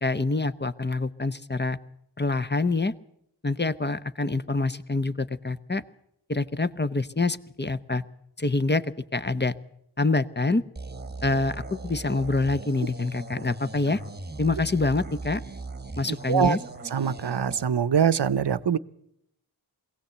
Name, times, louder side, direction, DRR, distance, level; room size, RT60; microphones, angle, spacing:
voice 1, 0.0-1.8 2.2-2.9 3.4-5.8 6.3-8.0 8.4-9.5 10.0-10.6 11.2-14.0 14.4-15.4 16.0-16.6, left 3 dB, 25° left, 13 dB, 0.8 m, -26 dB
sound 1, 10.8-17.6, right 3 dB, 25° right, 1.2 m, -39 dB
voice 2, 16.9-18.8, right 7 dB, 70° right, 16 dB, 0.7 m, -23 dB
22.5 x 16.5 x 8.0 m, 0.76 s
wide cardioid pair, 60°, 43 cm